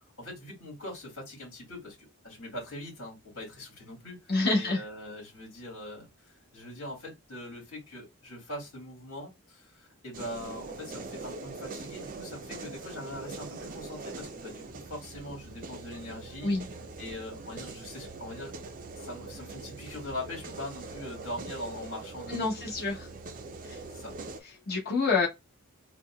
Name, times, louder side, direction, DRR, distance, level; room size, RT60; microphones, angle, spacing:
voice 1, 0.2-2.0 2.2-16.5 17.0-18.5 19.0-22.7 23.9-24.2, left 1 dB, 70° left, 2.1 m, -42 dB
voice 2, 4.3-4.8 16.4-16.6 22.3-23.1 23.6-23.8 24.7-25.3, left 3 dB, 45° left, 1.2 m, -27 dB
sound 1, 10.1-24.4, right 3 dB, 40° right, 0.4 m, -42 dB
4.0 x 2.3 x 2.2 m
head